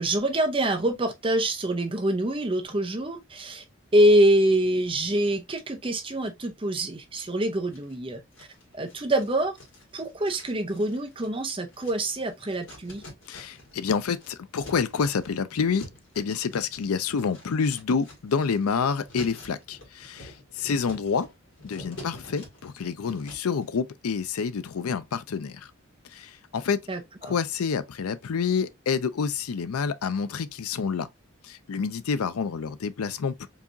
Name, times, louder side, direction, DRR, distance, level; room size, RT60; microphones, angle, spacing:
voice 1, 0.0-3.6 3.9-8.5 8.7-9.6 9.9-13.0 26.9-27.3, right 1 dB, 25° right, 0.7 m, -25 dB
sound 1, 7.1-7.9 8.3-13.8 14.1-23.6, left 1 dB, 60° left, 2.1 m, -48 dB
voice 2, 13.3-15.9 16.2-20.3 20.6-21.3 21.6-25.7 26.1-26.8 27.2-31.1 31.5-33.5, left 5 dB, 90° left, 0.5 m, -28 dB
4.7 x 2.9 x 2.6 m
head